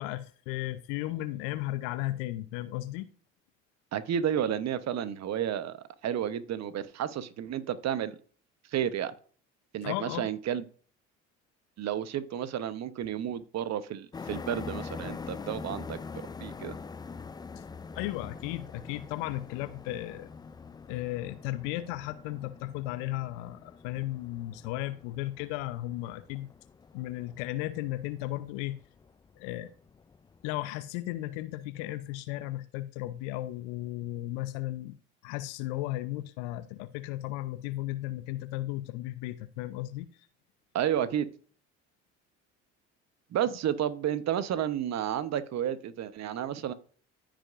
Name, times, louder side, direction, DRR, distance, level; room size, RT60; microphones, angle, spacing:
voice 1, 0.0-3.1 9.8-10.3 17.9-20.3 20.9-26.5 26.9-28.8 29.4-29.7 30.4-35.0 35.2-40.1, left 16 dB, 70° left, 0.7 m, -35 dB
voice 2, 3.9-5.8 6.0-8.1 8.7-9.1 9.7-10.6 11.8-16.0 16.4-16.8 40.7-41.3 43.3-46.7, right 10 dB, 45° right, 1.0 m, -31 dB
sound 1, 14.1-30.6, left 5 dB, 10° left, 0.3 m, -44 dB
14.5 x 5.1 x 2.5 m
hypercardioid pair, 65°, 36 cm